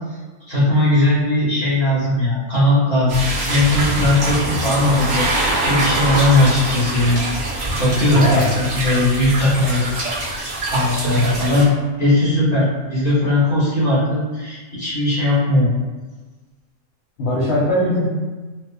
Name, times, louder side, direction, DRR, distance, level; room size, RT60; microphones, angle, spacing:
voice 1, 0.5-5.3 5.6-7.2 7.8-9.9 10.3-11.7 12.0-15.7, left 1 dB, 30° left, -11 dB, 1.7 m, -18 dB
sound 1, 3.1-11.6, right 2 dB, 65° right, 1.0 m, -23 dB
voice 2, 8.1-8.5 17.2-18.1, left 1 dB, 60° left, -7 dB, 0.8 m, -19 dB
4.1 x 2.1 x 2.2 m, 1.3 s
omnidirectional pair, 1.4 m